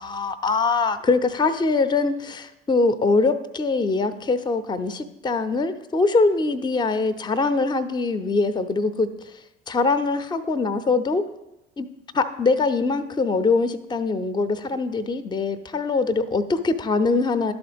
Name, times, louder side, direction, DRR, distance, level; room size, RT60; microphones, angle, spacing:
voice 1, 0.0-9.1 9.7-11.2 11.8-11.9 12.1-17.5, left 3 dB, 15° left, 12 dB, 0.5 m, -23 dB
11.5 x 3.9 x 3.5 m, 0.92 s
figure-of-eight pair, 50°, 30 cm